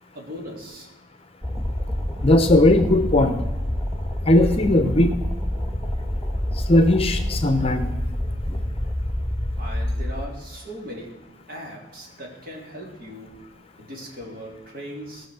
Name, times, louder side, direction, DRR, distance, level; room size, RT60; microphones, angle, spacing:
voice 1, 0.1-0.9 9.6-13.5 13.8-15.3, equal, 50° right, -1 dB, 3.2 m, -38 dB
sound 1, 1.4-10.2, left 1 dB, ahead, 1.5 m, -27 dB
voice 2, 2.2-3.4 4.2-5.2 6.5-8.0 8.5-8.6, left 1 dB, 30° left, 8 dB, 0.8 m, -18 dB
17.5 x 6.5 x 6.2 m, 1.0 s
head